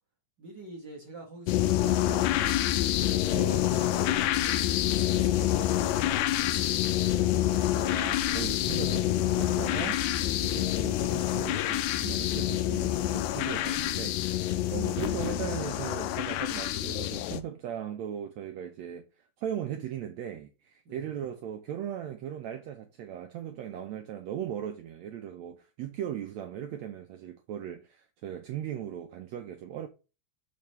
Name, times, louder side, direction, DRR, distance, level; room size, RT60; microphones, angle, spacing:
voice 1, 0.4-7.2 10.2-10.6 14.4-14.7 20.8-21.0, right 3 dB, 50° right, 1.4 m, -45 dB
sound 1, 1.5-17.4, left 13 dB, 90° left, 1.7 m, -27 dB
sound 2, 3.3-7.0, right 1 dB, 55° left, 1.0 m, -52 dB
voice 2, 7.7-10.0 10.4-19.1 19.4-29.9, right 10 dB, 85° right, 1.6 m, -38 dB
6.9 x 5.4 x 3.0 m
omnidirectional pair, 4.0 m